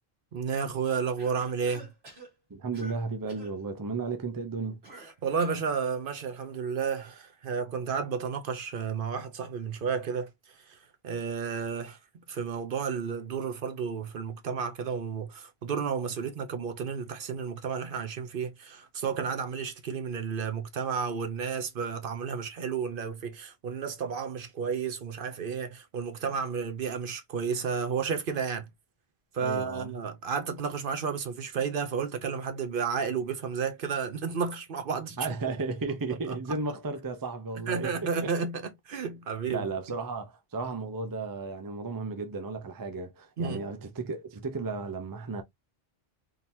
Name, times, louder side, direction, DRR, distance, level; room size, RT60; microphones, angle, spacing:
voice 1, 0.3-1.9 5.2-12.0 12.3-28.7 29.3-35.3 36.3-36.6 37.5-39.7 43.4-43.6, right 6 dB, 60° right, 0.8 m, -32 dB
Cough, 1.2-2.3 2.7-3.0 3.3-3.6 4.8-5.7, right 2 dB, 85° right, 1.7 m, -49 dB
voice 2, 2.5-4.8 29.4-29.9 35.2-37.9 38.2-38.3 39.5-45.4, right 4 dB, 25° right, 0.5 m, -34 dB
3.8 x 2.8 x 2.6 m
omnidirectional pair, 1.0 m